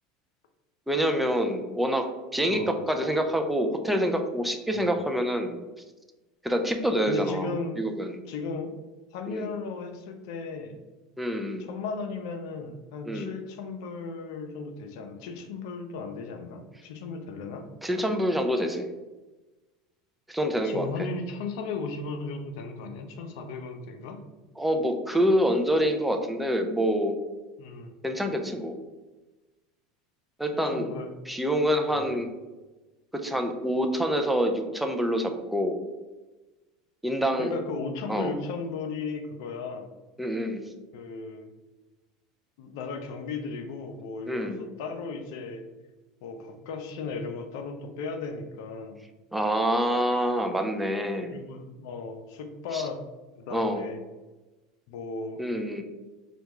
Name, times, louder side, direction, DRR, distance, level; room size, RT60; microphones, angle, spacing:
voice 1, 0.9-2.1 2.3-5.6 6.4-7.5 7.8-8.2 9.3-9.5 11.2-11.7 13.1-13.3 17.8-18.9 20.3-20.9 24.6-27.2 28.0-28.7 30.4-30.9 31.3-32.3 33.1-35.8 37.0-37.5 38.1-38.3 40.2-40.6 44.3-44.6 49.3-51.4 52.7-52.8 53.5-53.8 55.4-55.8, equal, 5° right, 4 dB, 0.4 m, -26 dB
voice 2, 2.5-2.8 4.7-5.0 7.1-7.9 8.3-8.8 9.1-10.8 11.6-17.7 20.6-24.2 27.6-27.9 30.5-31.1 31.9-32.2 37.4-39.9 40.9-41.5 42.6-45.6 46.2-49.0 51.2-53.0 53.4-54.0 54.9-55.4, left 4 dB, 75° left, 6 dB, 0.5 m, -36 dB
3.3 x 2.3 x 3.0 m, 1.2 s
hypercardioid pair, 95°, 2 cm